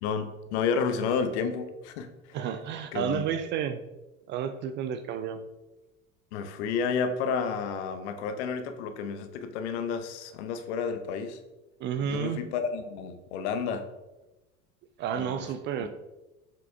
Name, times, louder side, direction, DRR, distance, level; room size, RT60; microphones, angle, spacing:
voice 1, 0.0-2.4 2.9-3.2 6.3-11.4 12.1-13.9 15.1-15.5 15.8-15.9, left 6 dB, 55° left, 9 dB, 0.9 m, -31 dB
voice 2, 2.3-3.8 4.3-5.4 11.8-12.4 15.0-15.9, right 8 dB, 30° right, 9 dB, 0.4 m, -31 dB
7.1 x 5.9 x 3.4 m, 1.0 s
figure-of-eight pair, 70°, 40 cm